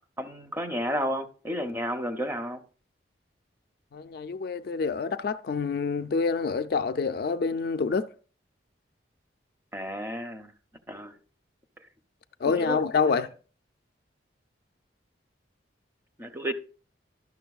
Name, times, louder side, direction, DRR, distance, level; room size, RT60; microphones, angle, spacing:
voice 1, 0.2-2.6 9.7-10.5 10.9-11.2 12.4-12.8 16.2-16.5, equal, 10° right, 0.5 m, -32 dB
voice 2, 3.9-8.1 12.4-13.3, left 5 dB, 50° left, 0.3 m, -27 dB
11.5 x 6.3 x 2.3 m
head